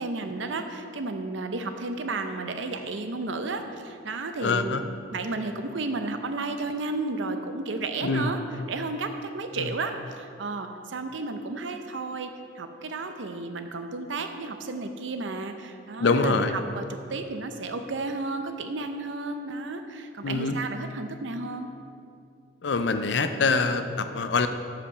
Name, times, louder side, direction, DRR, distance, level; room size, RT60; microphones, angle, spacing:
voice 1, 0.0-4.8 5.1-8.4 8.7-21.7, right 3 dB, 75° right, 7 dB, 0.6 m, -33 dB
voice 2, 4.4-4.8 8.0-8.3 9.6-9.7 16.0-16.6 20.2-20.6 22.6-24.5, left 4 dB, 65° left, 9 dB, 0.5 m, -24 dB
8.3 x 5.1 x 5.8 m, 2.4 s
head